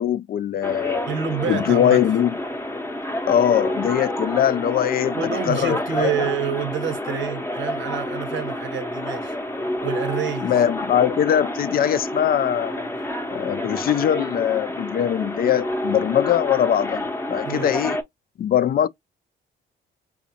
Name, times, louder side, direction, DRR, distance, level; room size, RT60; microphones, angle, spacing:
voice 1, 0.0-1.0 1.5-2.4 3.3-6.3 10.4-12.8 13.3-18.0 18.4-18.9, left 10 dB, 50° left, 0.4 m, -21 dB
sound 1, 0.6-18.0, left 1 dB, 10° left, 0.7 m, -29 dB
voice 2, 1.1-2.0 5.1-9.4 9.8-10.5 17.4-17.8, right 8 dB, 70° right, 0.9 m, -28 dB
5.0 x 2.4 x 2.7 m
cardioid pair, 90°, 20 cm